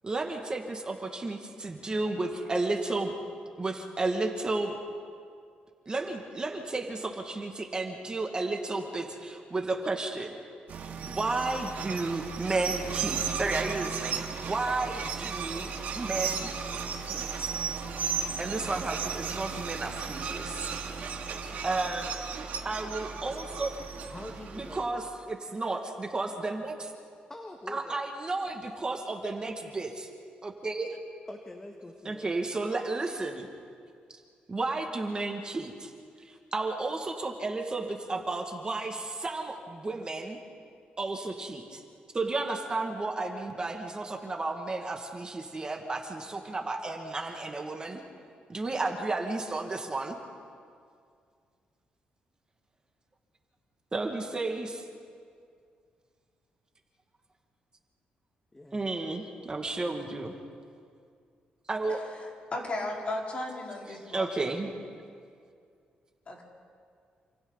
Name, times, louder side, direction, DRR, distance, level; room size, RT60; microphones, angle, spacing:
voice 1, 0.0-3.1 3.6-4.8 5.9-10.4 11.0-16.5 17.1-17.5 18.4-20.7 21.6-22.1 22.6-23.7 24.5-26.9 27.7-30.1 30.4-31.0 32.0-33.5 34.5-35.9 36.3-40.4 41.0-41.8 42.1-48.0 48.5-50.2 53.9-54.8 58.7-60.3 61.7-62.0 63.9-64.7, right 3 dB, 25° right, 2 dB, 2.1 m, -32 dB
sound 1, 10.7-24.8, right 6 dB, 65° right, 2.3 m, -35 dB
voice 2, 24.0-25.1 27.3-28.0 31.3-32.5 58.5-59.4, left 1 dB, 15° left, 2 dB, 1.7 m, -45 dB
voice 3, 62.5-64.4 66.3-66.4, left 2 dB, 40° left, -2 dB, 4.7 m, -35 dB
28.5 x 27.0 x 4.1 m, 2.2 s
cardioid pair, 105°, 3 cm